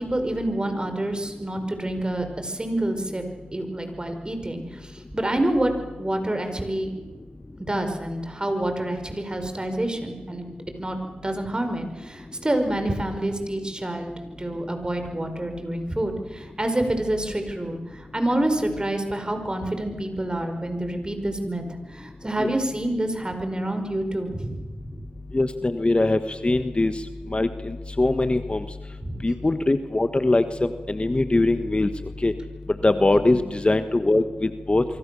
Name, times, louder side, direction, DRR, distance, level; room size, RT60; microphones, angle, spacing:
voice 1, 0.0-3.2 3.5-5.7 6.0-6.9 7.7-10.5 10.8-11.0 11.2-14.1 14.4-21.6 21.9-24.7 29.0-29.2 33.1-33.4, right 1 dB, 25° right, 6 dB, 5.3 m, -27 dB
voice 2, 25.3-26.9 27.3-28.6 29.2-31.9 32.2-32.3 32.8-34.8, left 2 dB, 30° left, 10 dB, 1.4 m, -22 dB
25.5 x 24.0 x 7.0 m, 1.3 s
cardioid pair, 45°, 4 cm